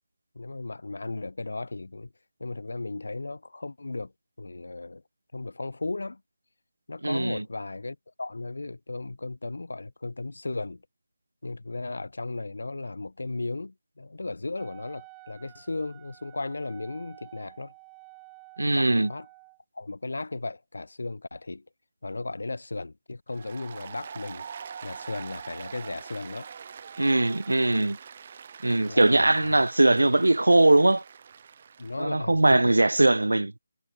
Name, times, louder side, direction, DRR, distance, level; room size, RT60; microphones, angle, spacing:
voice 1, 0.3-2.1 2.4-4.1 4.4-5.0 5.3-6.2 6.9-10.8 11.4-17.7 18.7-19.3 19.7-21.7 22.0-24.5 24.8-26.5 28.7-29.6 31.8-32.7, left 2 dB, 75° left, 0.8 m, -36 dB
voice 2, 7.0-7.4 18.6-19.1 27.0-28.0 28.6-31.0 32.0-33.5, right 2 dB, 85° right, 0.4 m, -21 dB
Wind instrument woodwind instrument, 14.5-19.6, right 32 dB, 15° right, 3.9 m, -51 dB
Applause, 23.3-32.0, right 6 dB, 40° right, 2.2 m, -44 dB
figure-of-eight pair, 160°, 0 cm